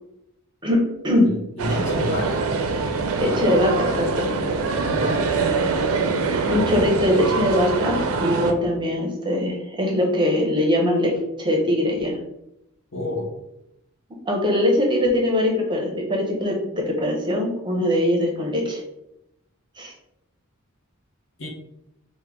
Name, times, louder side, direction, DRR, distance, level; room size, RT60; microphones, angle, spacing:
voice 1, 0.6-1.3 3.2-4.3 6.4-12.2 14.3-18.8 19.8-19.9, left 1 dB, 20° right, 0 dB, 0.6 m, -22 dB
voice 2, 1.3-2.5 4.9-5.3 12.9-13.3 21.4-21.5, left 1 dB, 60° left, -1 dB, 0.8 m, -29 dB
sound 1, 1.6-8.5, right 4 dB, 75° right, 0.4 m, -24 dB
3.5 x 2.1 x 3.4 m, 0.84 s
head